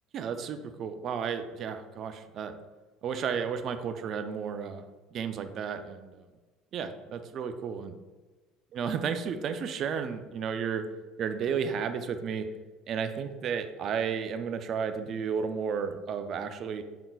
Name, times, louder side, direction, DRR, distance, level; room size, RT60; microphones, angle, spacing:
voice 1, 0.1-2.5 3.0-4.8 5.1-6.2 6.7-8.0 8.7-10.9 11.2-12.5 12.9-16.8, right 6 dB, 55° right, 9 dB, 0.4 m, -33 dB
5.4 x 3.7 x 2.3 m, 1.2 s
hypercardioid pair, 70°, 0 cm